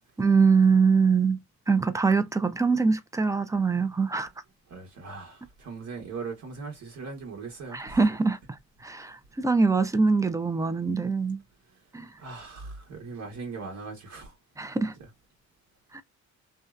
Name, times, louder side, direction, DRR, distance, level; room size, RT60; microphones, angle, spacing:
voice 1, 0.2-1.4 1.7-4.3 7.7-8.4 8.8-11.4 11.9-12.1 14.6-14.9 15.9-16.0, right 4 dB, 10° right, 0.3 m, -23 dB
voice 2, 4.7-8.0 12.2-14.3, right 4 dB, 65° right, 1.0 m, -39 dB
2.6 x 2.1 x 2.2 m
cardioid pair, 90°, 30 cm